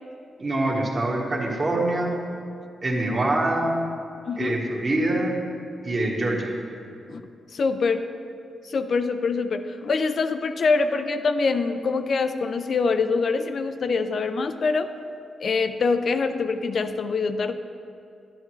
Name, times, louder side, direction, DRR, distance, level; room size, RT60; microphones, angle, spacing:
voice 1, 0.4-2.2 2.8-3.8 4.4-5.4 5.8-6.5, right 1 dB, 40° right, -2 dB, 1.5 m, -24 dB
voice 2, 4.3-4.6 7.1-7.2 7.5-8.1 8.6-14.9 15.4-17.5, left 4 dB, 55° left, 9 dB, 0.4 m, -24 dB
10.5 x 10.5 x 3.1 m, 2.4 s
cardioid pair, 100°, 0 cm